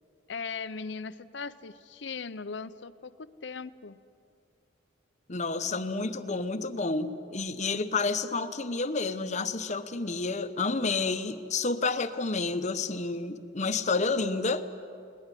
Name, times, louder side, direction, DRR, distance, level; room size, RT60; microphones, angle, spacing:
voice 1, 0.3-4.0, left 5 dB, 65° left, 14 dB, 0.7 m, -39 dB
voice 2, 5.3-14.6, left 3 dB, 40° left, 10 dB, 1.0 m, -30 dB
22.0 x 19.0 x 9.9 m, 2.4 s
head